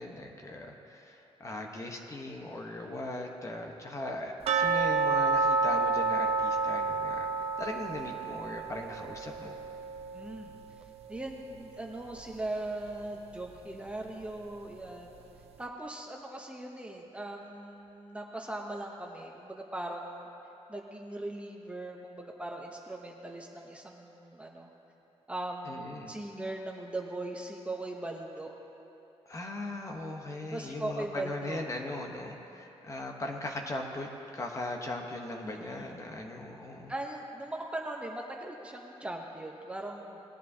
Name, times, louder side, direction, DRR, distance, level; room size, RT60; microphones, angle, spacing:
voice 1, 0.0-9.6 25.7-26.1 29.3-36.9, left 2 dB, 30° left, 2 dB, 1.0 m, -39 dB
sound 1, 4.5-11.3 11.6-11.7 12.2-12.3 12.8-12.9, right 4 dB, 70° right, 0.6 m, -30 dB
voice 2, 10.1-15.1 15.6-20.3 20.7-24.7 25.3-28.5 30.4-31.6 35.4-36.0 36.9-40.2, right 2 dB, 10° right, 0 dB, 0.8 m, -39 dB
19.5 x 10.0 x 2.8 m, 2.9 s
wide cardioid pair, 155°, 11 cm